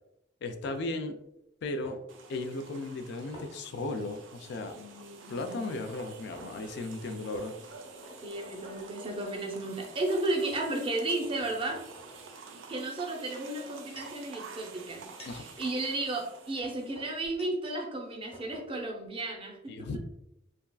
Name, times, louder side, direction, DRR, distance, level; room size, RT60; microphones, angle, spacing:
voice 1, 0.4-1.1 1.6-2.0 2.3-4.8 5.3-7.5 15.3-15.5 19.7-20.0, left 2 dB, 60° left, 7 dB, 0.3 m, -36 dB
sound 1, 0.6-1.1 1.8-2.0 3.3-4.0 4.4-4.6 5.9-6.0 6.3-6.5 7.3-8.9 9.7-9.9 10.5-10.6 11.2-12.3 13.5-14.2 14.9-17.8 18.0-18.1 18.3-18.7, left 1 dB, 30° left, 0.8 m, -50 dB
sound 2, 2.1-17.2, right 4 dB, 80° right, 0.4 m, -49 dB
voice 2, 4.7-5.9 8.2-11.8 12.7-19.7, right 2 dB, 30° right, 1 dB, 0.5 m, -34 dB
3.4 x 2.3 x 2.2 m, 0.84 s
head